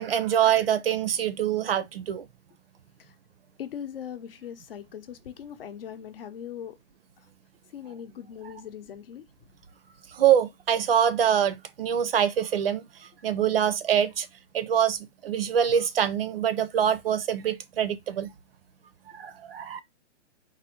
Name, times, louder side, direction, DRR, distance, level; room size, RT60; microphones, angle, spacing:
voice 1, 0.0-2.3 10.1-12.8 13.2-14.3 14.5-18.3 19.1-19.8, right 9 dB, 50° right, 0.6 m, -24 dB
voice 2, 3.6-6.8 7.7-9.2, left 9 dB, 50° left, 0.7 m, -40 dB
4.1 x 2.6 x 4.2 m
hypercardioid pair, 170°, 37 cm